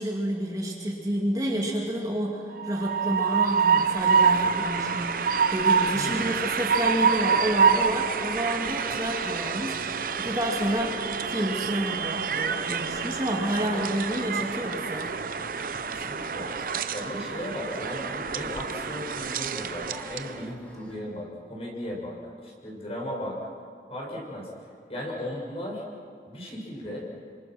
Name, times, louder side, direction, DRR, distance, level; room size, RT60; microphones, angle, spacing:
voice 1, 0.0-15.2, equal, 20° right, -2 dB, 2.5 m, -30 dB
Train, 2.6-20.4, right 6 dB, 50° right, 0.9 m, -27 dB
voice 2, 5.9-6.4 15.9-16.5 16.9-22.2 22.4-23.4 23.9-24.5 24.9-25.8 26.3-27.1, left 1 dB, 35° left, -3 dB, 6.7 m, -36 dB
sound 1, 7.1-21.0, equal, 10° left, 3.9 m, -47 dB
29.5 x 26.5 x 6.2 m, 2.3 s
head